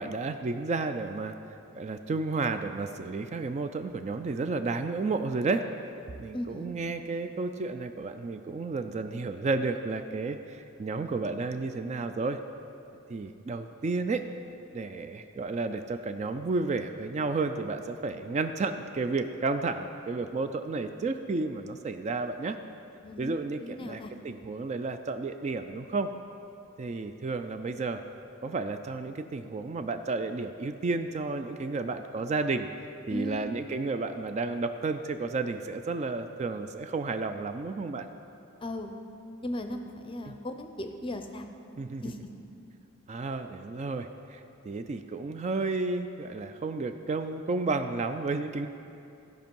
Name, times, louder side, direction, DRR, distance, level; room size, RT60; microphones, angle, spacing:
voice 1, 0.0-1.4 1.7-5.6 6.2-12.4 13.1-14.2 14.7-22.6 23.2-26.1 26.8-28.0 28.4-32.7 33.1-38.1 40.3-40.4 41.8-42.1 43.1-48.7, right 3 dB, 30° right, 8 dB, 0.3 m, -32 dB
voice 2, 6.3-6.8 23.0-23.3 23.6-24.1 33.1-33.5 38.6-38.9 39.4-41.5 42.0-42.2, left 1 dB, 25° left, 6 dB, 0.5 m, -37 dB
14.0 x 5.2 x 5.4 m, 2.7 s
head